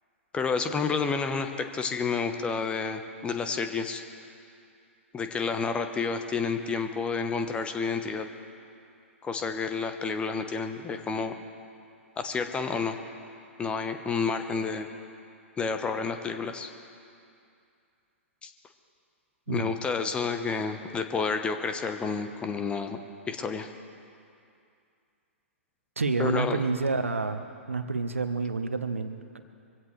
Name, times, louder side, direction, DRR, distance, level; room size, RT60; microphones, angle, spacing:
voice 1, 0.3-4.0 5.1-8.3 9.2-11.3 12.2-13.0 13.6-14.9 15.6-16.7 18.4-18.5 19.5-23.0 23.3-23.7 26.2-26.6, left 5 dB, 15° left, 7 dB, 1.0 m, -30 dB
voice 2, 26.0-27.4 27.7-29.4, right 3 dB, 75° right, 9 dB, 1.0 m, -29 dB
24.0 x 16.0 x 3.3 m, 2.5 s
figure-of-eight pair, 110°, 7 cm